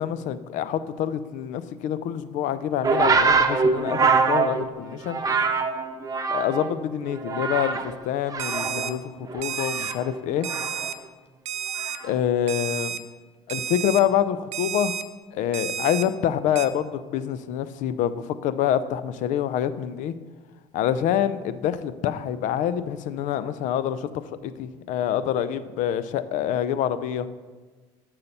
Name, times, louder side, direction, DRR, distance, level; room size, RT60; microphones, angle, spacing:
voice 1, 0.0-5.2 6.3-10.5 12.0-13.0 13.5-15.0 15.3-20.2 20.7-27.3, left 10 dB, 65° left, 14 dB, 0.5 m, -26 dB
sound 1, 2.8-6.8 7.1-8.0 8.3-10.9 11.8-12.1, right 4 dB, 25° right, 0.9 m, -24 dB
Alarm, 8.4-8.9 9.4-9.9 10.4-10.9 11.5-12.0 12.5-13.0 13.5-14.0 14.5-15.0 15.5-16.0 16.6-16.7, right 9 dB, 55° right, 0.6 m, -31 dB
6.8 x 5.7 x 6.6 m, 1.3 s
supercardioid pair, 80°, 14 cm